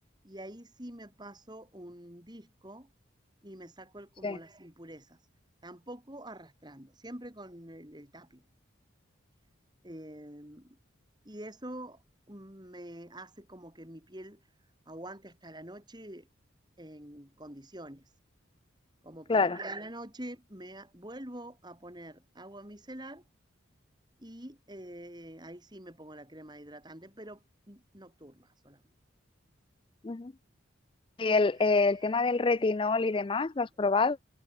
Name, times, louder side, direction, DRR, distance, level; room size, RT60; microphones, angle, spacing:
voice 1, 0.2-2.9 3.4-5.2 5.6-8.4 9.8-10.8 11.2-12.0 12.3-14.4 14.9-16.3 16.8-18.0 19.0-23.2 24.2-27.4 27.7-28.8 31.6-32.5, right 1 dB, 20° right, 4.3 m, -46 dB
voice 2, 31.2-34.2, left 3 dB, 25° left, 0.4 m, -26 dB
head